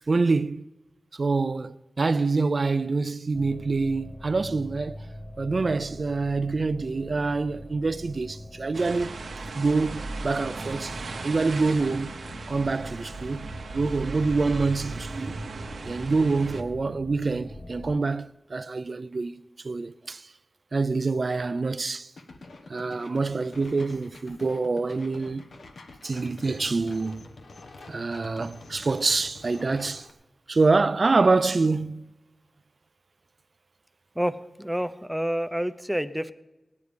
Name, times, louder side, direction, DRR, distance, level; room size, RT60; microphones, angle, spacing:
voice 1, 0.1-0.7 1.1-5.0 5.4-9.2 9.5-12.2 12.5-15.3 15.9-20.3 20.7-22.1 22.7-25.5 26.0-27.3 27.9-30.1 30.5-32.1, right 3 dB, 50° right, 0.4 m, -26 dB
sound 1, 3.3-18.0, left 1 dB, 30° left, 0.8 m, -44 dB
sound 2, 8.7-16.6, right 3 dB, 85° right, 0.9 m, -37 dB
sound 3, 22.2-30.1, left 2 dB, 90° left, 1.2 m, -47 dB
voice 2, 34.2-36.3, equal, 5° right, 0.5 m, -28 dB
18.0 x 9.5 x 5.1 m
wide cardioid pair, 100°, 0 cm